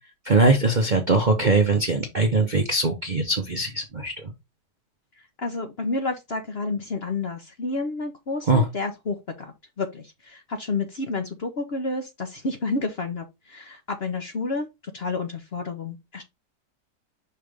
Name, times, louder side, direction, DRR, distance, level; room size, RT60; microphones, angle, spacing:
voice 1, 0.3-4.3 8.5-8.6, right 2 dB, 40° right, 0.7 m, -21 dB
voice 2, 5.4-14.7 14.9-16.2, left 3 dB, 45° left, 0.9 m, -30 dB
5.6 x 3.3 x 5.1 m
omnidirectional pair, 1.8 m